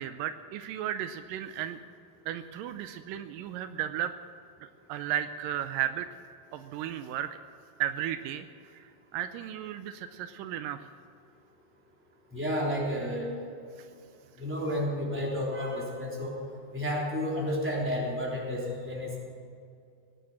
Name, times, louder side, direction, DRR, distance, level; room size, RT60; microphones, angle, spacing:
voice 1, 0.0-1.8 2.3-4.1 4.6-6.1 6.5-7.3 7.8-8.5 8.7-10.9 13.8-13.9, right 11 dB, 80° right, 10 dB, 2.2 m, -34 dB
voice 2, 12.3-13.3 14.4-16.3 16.7-19.2, equal, 5° right, -4 dB, 3.2 m, -31 dB
18.0 x 9.8 x 7.5 m, 2.4 s
omnidirectional pair, 4.0 m